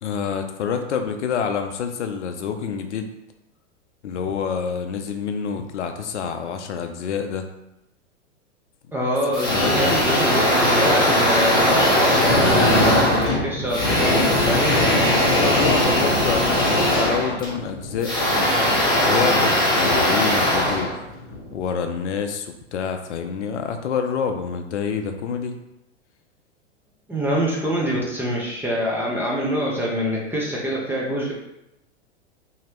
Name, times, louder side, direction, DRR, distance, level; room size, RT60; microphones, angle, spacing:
voice 1, 0.0-3.1 4.0-7.5 9.5-9.7 14.7-18.2 19.0-21.1 21.5-25.5, left 6 dB, 70° left, 6 dB, 0.5 m, -27 dB
voice 2, 8.9-14.8 27.1-31.3, equal, 5° right, -4 dB, 0.6 m, -25 dB
sound 1, 9.3-21.5, left 1 dB, 10° left, 1.3 m, -19 dB
2.9 x 2.8 x 3.0 m, 0.86 s
hypercardioid pair, 105°, 36 cm